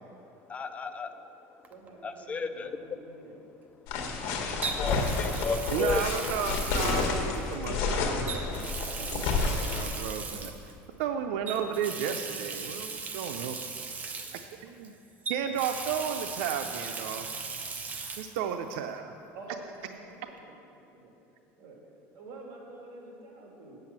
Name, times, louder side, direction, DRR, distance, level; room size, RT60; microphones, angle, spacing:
voice 1, 0.5-1.1 2.0-2.7 4.3-6.1, left 4 dB, 20° left, 10 dB, 0.3 m, -33 dB
Water tap faucet, 1.6-1.9 4.6-7.7 8.2-10.7 11.5-14.9 15.2-18.4 18.7-18.8 20.4-20.5, right 4 dB, 25° right, 0.8 m, -38 dB
voice 2, 1.7-3.4 8.2-9.4 9.9-10.4 11.2-11.6 18.4-18.9 19.3-21.1 21.6-21.8 22.1-23.8, right 2 dB, 50° right, -2 dB, 2.9 m, -48 dB
sound 1, 3.9-9.8, left 4 dB, 65° left, 1.6 m, -30 dB
voice 3, 5.7-8.3 9.0-9.3 9.7-10.5 11.0-13.6 14.6-14.9 15.3-17.3 18.2-19.2, right 8 dB, 85° right, 6 dB, 0.5 m, -33 dB
8.7 x 7.6 x 7.4 m, 2.9 s
cardioid pair, 145°, 6 cm